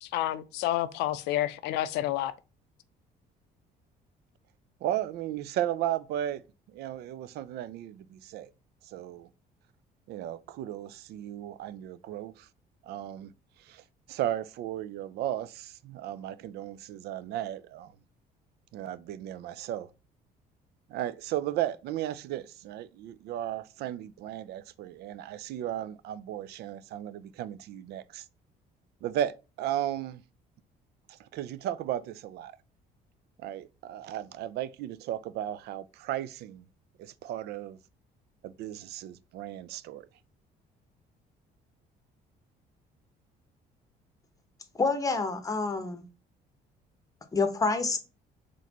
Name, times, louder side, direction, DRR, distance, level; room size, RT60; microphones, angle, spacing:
voice 1, 0.0-2.3, left 13 dB, 90° left, 0.4 m, -29 dB
voice 2, 4.8-6.4 6.7-8.5 8.8-9.3 10.1-12.5 12.8-13.3 13.6-17.9 18.7-19.9 20.9-28.2 29.0-30.2 31.1-32.6 33.4-36.7 37.0-37.8 38.4-40.1, right 12 dB, 75° right, 0.4 m, -35 dB
voice 3, 44.8-46.0 47.3-48.0, left 4 dB, 20° left, 0.8 m, -27 dB
4.1 x 3.2 x 2.8 m
cardioid pair, 110°, 17 cm